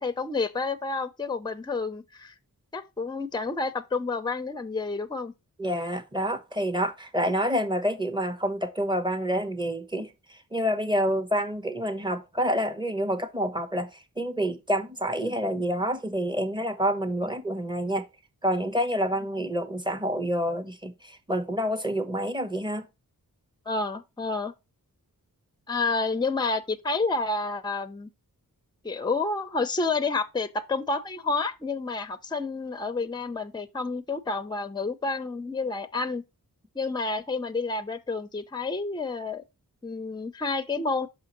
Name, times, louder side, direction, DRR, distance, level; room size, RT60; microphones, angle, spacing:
voice 1, 0.0-2.3 2.7-5.3 15.2-15.4 23.7-24.5 25.7-28.1 28.8-36.2 36.7-39.4 39.8-41.1, left 3 dB, 10° left, 0.6 m, -29 dB
voice 2, 5.6-18.1 18.4-22.9, equal, 15° right, 0.9 m, -28 dB
5.9 x 5.6 x 2.9 m
wide cardioid pair, 90°, 35 cm